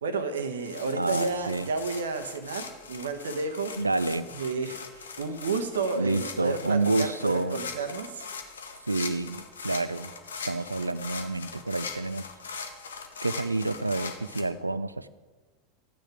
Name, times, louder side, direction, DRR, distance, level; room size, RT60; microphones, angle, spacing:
voice 1, 0.0-3.7 4.3-8.2, right 4 dB, 70° right, 8 dB, 1.0 m, -31 dB
sound 1, 0.6-14.4, left 5 dB, 70° left, 1.1 m, -40 dB
voice 2, 0.9-1.7 3.8-4.3 6.0-7.6 8.9-10.1 10.4-12.3 13.2-15.1, right 2 dB, 85° right, 16 dB, 0.4 m, -28 dB
13.0 x 9.1 x 4.9 m, 1.3 s
figure-of-eight pair, 80°, 0 cm